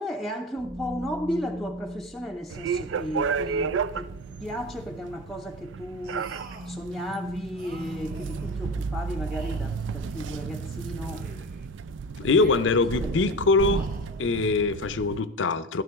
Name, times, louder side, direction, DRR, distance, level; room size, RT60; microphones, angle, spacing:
voice 1, 0.0-6.3 6.7-11.3 12.9-13.4, equal, ahead, 0.5 m, -35 dB
sound 1, 0.6-9.7, equal, 25° right, 1.0 m, -41 dB
sound 2, 2.5-15.2, right 5 dB, 75° right, 0.4 m, -33 dB
sound 3, 6.0-6.8 7.5-8.6 9.2-10.5 10.9-11.7 12.2-12.9 13.5-14.5, right 2 dB, 50° right, 1.8 m, -48 dB
voice 2, 12.2-13.8 14.2-15.8, left 3 dB, 80° left, 0.6 m, -23 dB
12.5 x 12.0 x 3.5 m
head